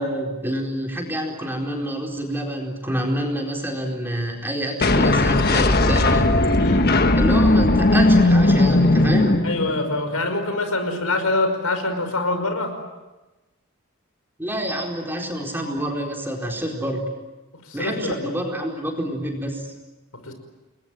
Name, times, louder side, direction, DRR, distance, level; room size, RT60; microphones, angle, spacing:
voice 1, 0.0-6.4 7.1-9.4 14.4-17.1 17.7-19.6, equal, 10° right, 1 dB, 4.3 m, -27 dB
sound 1, 4.8-10.0, left 2 dB, 45° left, 1.4 m, -17 dB
voice 2, 6.6-6.9 9.4-12.7 17.7-18.4 20.2-20.3, left 2 dB, 80° left, 7 dB, 5.4 m, -25 dB
29.5 x 21.5 x 9.2 m, 1.1 s
head